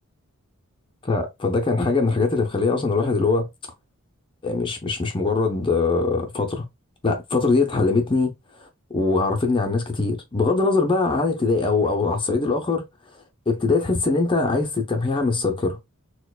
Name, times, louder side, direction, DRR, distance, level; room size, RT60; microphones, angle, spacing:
voice 1, 1.0-3.5 4.4-6.6 7.0-8.3 8.6-8.7 8.9-12.8 13.5-15.8, left 3 dB, 25° left, 0.5 m, -22 dB
4.2 x 2.2 x 2.3 m
head